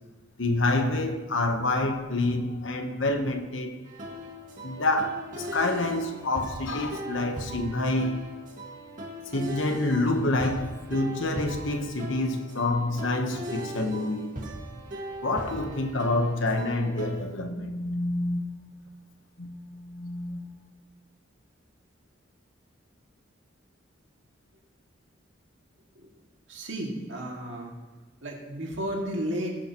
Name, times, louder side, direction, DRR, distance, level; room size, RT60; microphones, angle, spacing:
voice 1, 0.4-3.8 4.6-8.2 9.3-14.4 15.2-18.5 19.4-20.5, left 2 dB, 75° left, 1.0 m, -27 dB
sound 1, 3.8-17.2, equal, 45° right, 2.0 m, -39 dB
voice 2, 26.5-27.7 28.2-29.6, right 1 dB, 70° right, 2.1 m, -33 dB
18.0 x 7.6 x 3.0 m
head